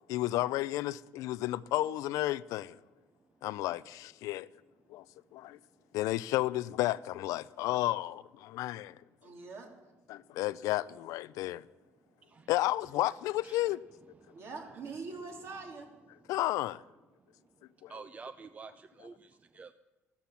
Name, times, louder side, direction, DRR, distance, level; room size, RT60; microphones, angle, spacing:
voice 1, 0.1-2.8 3.4-4.5 4.9-5.0 5.3-5.6 5.9-9.0 10.1-11.7 12.5-13.8 16.3-16.8 17.8-17.9, left 16 dB, 90° left, 0.4 m, -32 dB
voice 2, 9.2-9.7 14.3-15.9, right 4 dB, 55° right, 3.2 m, -43 dB
voice 3, 17.9-19.7, right 4 dB, 25° right, 0.5 m, -48 dB
14.5 x 13.0 x 5.8 m
cardioid pair, 125°, 6 cm